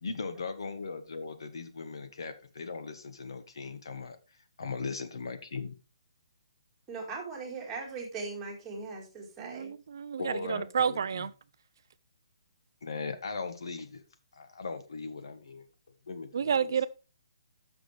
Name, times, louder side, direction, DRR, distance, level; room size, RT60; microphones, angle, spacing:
voice 1, 0.0-4.2 4.6-5.7 10.2-11.3 12.8-14.0 14.3-15.6 16.1-16.7, left 4 dB, 60° left, 1.3 m, -38 dB
voice 2, 6.9-9.7, right 4 dB, 10° right, 2.0 m, -39 dB
voice 3, 9.4-11.3 16.3-16.9, right 7 dB, 45° right, 0.4 m, -30 dB
12.5 x 6.2 x 3.3 m
hypercardioid pair, 175°, 3 cm